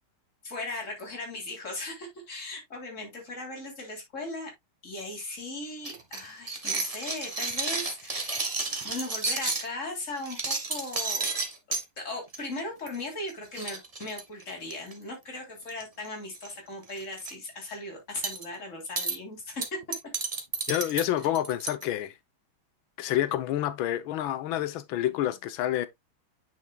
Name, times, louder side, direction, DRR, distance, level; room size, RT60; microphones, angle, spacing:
voice 1, 0.4-4.5 4.8-8.5 8.8-11.4 11.7-19.8 20.7-21.0, left 2 dB, 35° left, 3.6 m, -38 dB
sound 1, 5.8-9.7 10.2-11.8 12.3-12.6 12.9-13.0 13.3-13.4 13.6-14.9 15.7-16.1 16.3-16.5 16.9-17.3 18.2-18.4 19.0-19.2 19.6-21.8, right 3 dB, 20° right, 1.2 m, -31 dB
voice 2, 20.7-22.1 23.0-25.9, left 12 dB, 85° left, 1.5 m, -28 dB
9.3 x 5.6 x 2.2 m
omnidirectional pair, 2.2 m